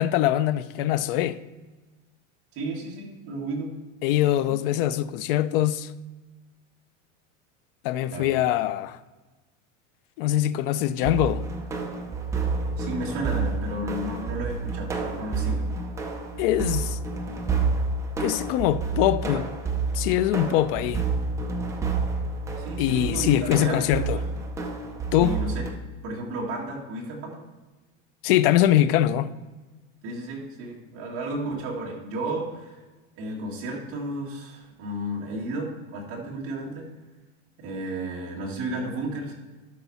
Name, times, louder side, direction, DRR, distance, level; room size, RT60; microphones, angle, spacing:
voice 1, 0.0-1.4 4.0-5.9 7.8-9.0 10.2-11.5 16.4-17.0 18.2-19.6 19.9-21.1 22.8-24.2 25.1-25.4 28.2-29.3, left 12 dB, 50° left, 0.4 m, -23 dB
voice 2, 2.5-3.7 8.1-8.3 12.8-15.6 22.6-23.8 24.1-24.2 25.2-25.6 26.0-27.4 30.0-32.8 33.2-36.9 37.6-39.4, right 1 dB, 35° right, 1.9 m, -33 dB
sound 1, 11.0-25.7, right 4 dB, 10° right, 0.5 m, -29 dB
12.0 x 5.9 x 4.1 m
supercardioid pair, 170°, 37 cm